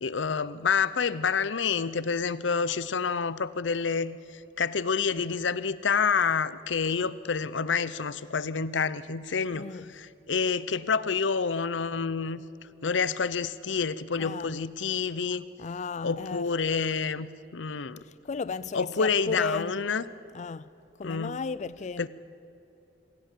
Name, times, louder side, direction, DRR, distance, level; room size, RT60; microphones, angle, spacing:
voice 1, 0.0-12.4 12.8-15.4 16.0-18.0 18.7-20.0 21.0-21.4 22.0-22.1, left 5 dB, 90° left, 0.7 m, -28 dB
voice 2, 9.5-9.9 14.2-14.6 15.6-16.5 18.0-19.8 20.3-20.7 21.0-22.1, left 4 dB, 40° left, 0.4 m, -34 dB
26.5 x 17.0 x 7.5 m
head